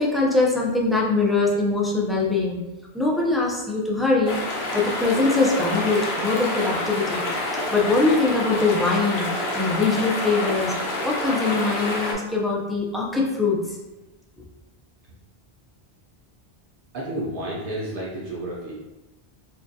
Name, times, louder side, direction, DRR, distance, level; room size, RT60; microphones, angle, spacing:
voice 1, 0.0-2.6 2.9-4.3 4.7-7.2 7.7-10.7 11.0-13.8, left 3 dB, ahead, -4 dB, 0.4 m, -22 dB
sound 1, 4.3-12.1, left 2 dB, 80° left, 1.0 m, -28 dB
voice 2, 16.9-18.7, right 1 dB, 60° right, -5 dB, 0.8 m, -31 dB
4.5 x 2.4 x 2.7 m, 1.0 s
omnidirectional pair, 1.1 m